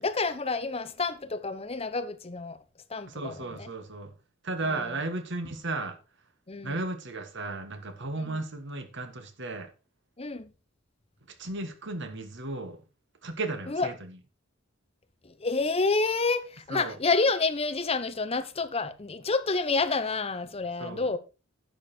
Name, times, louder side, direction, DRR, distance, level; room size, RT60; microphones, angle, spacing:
voice 1, 0.0-2.6 2.9-3.7 4.6-5.0 6.5-6.8 8.2-8.4 10.2-10.5 13.7-13.9 15.2-21.2, left 3 dB, 30° left, 0.9 m, -29 dB
voice 2, 3.1-4.1 4.4-6.0 6.6-9.7 11.4-12.8 13.2-13.9 16.7-17.0 20.8-21.0, right 2 dB, 60° right, 1.7 m, -34 dB
10.5 x 6.8 x 4.5 m
head